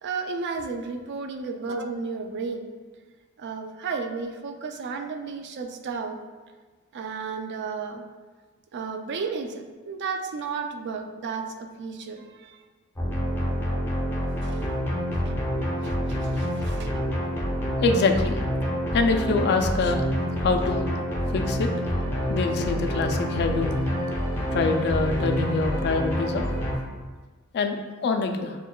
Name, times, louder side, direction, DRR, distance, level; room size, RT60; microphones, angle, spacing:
voice 1, 0.0-2.7 3.4-6.2 6.9-8.0 8.7-12.6 14.4-14.7 15.1-15.4 15.8-16.9, right 4 dB, 55° right, 5 dB, 0.4 m, -33 dB
sound 1, 12.9-26.8, equal, 10° left, 0.6 m, -27 dB
voice 2, 17.8-18.4 18.9-20.0 20.4-20.8 21.3-21.7 22.3-23.8 24.5-26.5 27.5-28.6, left 4 dB, 50° left, 6 dB, 0.3 m, -25 dB
6.3 x 2.2 x 2.2 m, 1.4 s
head